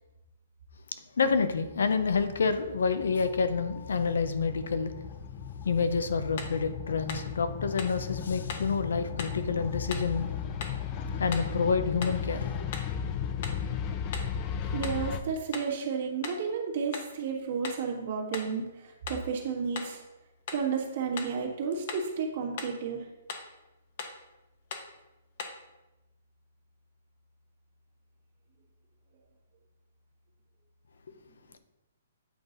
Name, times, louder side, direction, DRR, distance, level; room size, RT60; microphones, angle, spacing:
voice 1, 1.2-4.9 5.6-10.3 11.2-12.5, left 5 dB, 80° left, 0.7 m, -28 dB
sound 1, 1.3-15.2, left 7 dB, 25° left, 0.4 m, -36 dB
sound 2, 6.4-6.6 7.1-7.3 7.8-8.0 8.5-8.7 9.2-9.4 9.9-10.1 10.6-10.8 11.3-11.6 12.0-12.2 12.7-13.0 13.4-13.7 14.1-14.4 14.8-15.1 15.5-15.8 16.2-16.5 16.9-17.2 17.6-17.9 18.3-18.6 19.1-19.3 19.8-20.0 20.5-20.7 21.2-21.4 21.9-22.1 22.6-22.8 23.3-23.5 24.0-24.2 24.7-24.9 25.4-25.6, left 5 dB, 45° left, 0.9 m, -39 dB
voice 2, 14.7-20.0 20.5-23.1, right 5 dB, 50° right, 1.6 m, -32 dB
8.5 x 4.0 x 3.9 m
hypercardioid pair, 160°, 0 cm